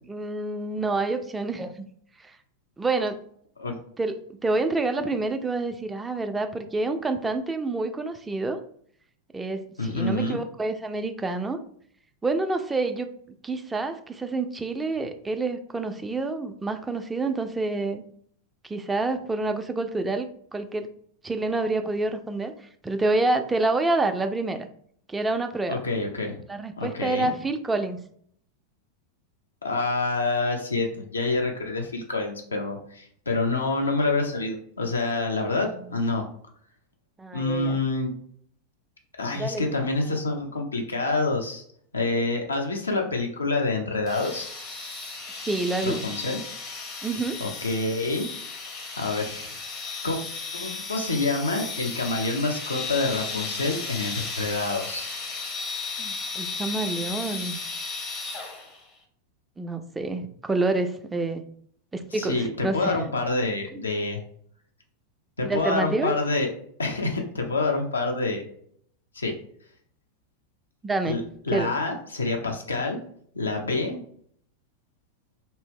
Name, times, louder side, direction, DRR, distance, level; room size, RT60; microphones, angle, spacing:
voice 1, 0.1-1.9 2.2-2.4 2.8-3.2 4.0-8.6 9.3-11.6 12.2-13.1 13.4-18.0 18.6-20.9 21.2-24.7 25.1-25.8 26.5-28.0 37.2-37.8 39.3-39.8 45.4-46.0 47.0-47.4 56.0-57.6 59.6-61.4 61.9-63.0 63.7-63.8 65.4-66.1 70.8-71.2 71.5-71.7, right 3 dB, 10° right, 7 dB, 0.3 m, -28 dB
voice 2, 9.8-10.4 25.7-26.4 26.8-27.3 29.6-36.2 37.3-38.1 39.2-41.6 41.9-44.5 45.8-46.4 47.4-48.3 49.0-49.6 50.0-50.2 50.5-55.1 62.1-64.2 65.4-66.5 66.8-68.4 69.1-69.3 71.0-71.2 71.5-73.0 73.3-74.0, left 3 dB, 75° left, 2 dB, 0.6 m, -27 dB
sound 1, 44.1-58.8, left 4 dB, 30° left, 0.6 m, -35 dB
2.7 x 2.0 x 3.6 m, 0.63 s
figure-of-eight pair, 90°, 0 cm